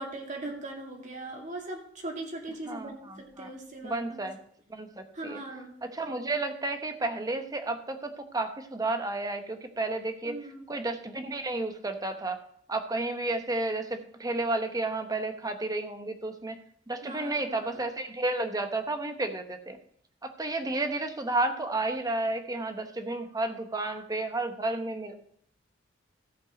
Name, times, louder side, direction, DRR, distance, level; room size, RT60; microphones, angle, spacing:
voice 1, 0.0-4.2 5.1-5.8 10.3-10.7 17.0-17.9, right 2 dB, 40° right, 0 dB, 2.3 m, -40 dB
voice 2, 2.7-3.5 3.8-4.4 4.7-5.4 5.8-10.3 10.7-12.4 12.7-16.6 16.9-19.8 20.2-25.2, right 2 dB, 20° right, 7 dB, 0.9 m, -32 dB
14.5 x 5.3 x 5.1 m, 0.65 s
head